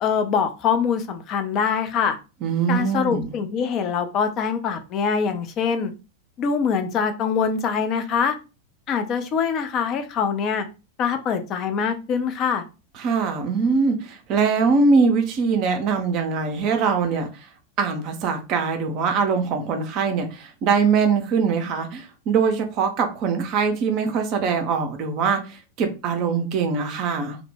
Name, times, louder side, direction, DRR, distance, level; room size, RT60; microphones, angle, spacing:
voice 1, 0.0-2.2 2.7-5.9 6.4-8.4 8.9-10.7 11.0-12.6, left 6 dB, 35° left, 0.4 m, -24 dB
voice 2, 2.4-3.3 13.0-17.4 17.8-27.4, right 5 dB, 40° right, 0.4 m, -22 dB
2.0 x 2.0 x 3.0 m
figure-of-eight pair, 90°, 0 cm